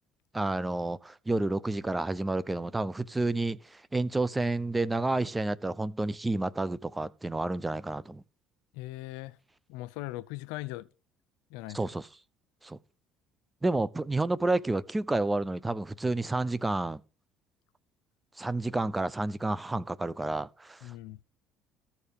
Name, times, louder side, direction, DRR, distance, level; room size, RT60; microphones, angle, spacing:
voice 1, 0.3-8.2 11.7-12.1 12.6-12.8 13.6-17.0 18.4-20.9, right 2 dB, 15° right, 0.6 m, -30 dB
voice 2, 8.7-9.4 9.7-10.9 11.5-11.8 20.8-21.2, left 17 dB, 85° left, 0.6 m, -39 dB
14.0 x 4.8 x 7.0 m
supercardioid pair, 85°, 0 cm